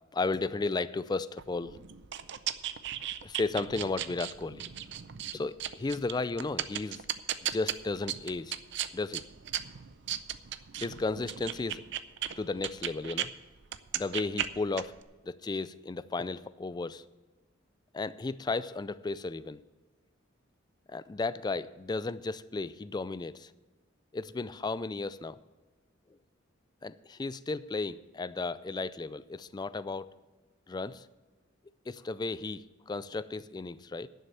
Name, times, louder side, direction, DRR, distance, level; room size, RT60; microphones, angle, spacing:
voice 1, 0.1-1.8 3.2-4.7 5.3-7.0 7.4-8.6 8.9-9.3 10.8-11.8 12.4-13.3 13.9-15.0 15.2-17.0 17.9-19.6 20.9-23.5 24.1-25.4 26.8-30.1 30.7-31.1 31.9-34.1, left 3 dB, 20° left, 16 dB, 0.3 m, -34 dB
sound 1, 1.4-13.3 13.6-15.0, right 11 dB, 60° right, 0.5 m, -36 dB
11.0 x 6.5 x 9.2 m, 1.2 s
head